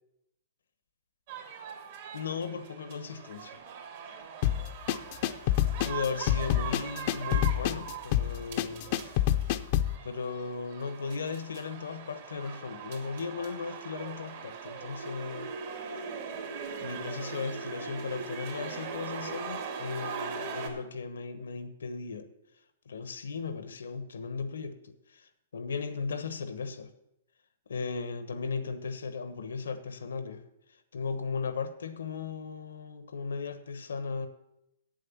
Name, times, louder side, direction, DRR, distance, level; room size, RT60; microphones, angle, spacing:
sound 1, 1.3-20.7, right 6 dB, 60° right, 2.3 m, -41 dB
voice 1, 2.1-3.6 5.7-9.0 10.0-15.5 16.8-22.3 22.8-26.9 27.7-30.4 30.9-34.3, left 5 dB, 85° left, 1.1 m, -36 dB
sound 2, 4.4-10.0, left 12 dB, 50° left, 0.6 m, -27 dB
8.6 x 7.8 x 7.1 m
hypercardioid pair, 135°, 0 cm